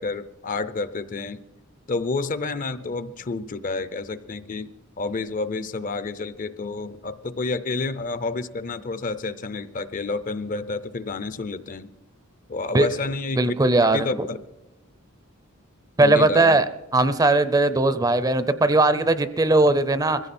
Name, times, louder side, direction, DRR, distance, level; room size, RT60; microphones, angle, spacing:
voice 1, 0.0-1.4 1.9-11.9 12.5-14.4 16.0-16.6, left 3 dB, 40° left, 14 dB, 0.6 m, -30 dB
voice 2, 13.4-14.3 16.0-16.7 16.9-20.2, right 2 dB, 15° right, 13 dB, 0.5 m, -19 dB
21.5 x 15.5 x 4.3 m, 1.0 s
head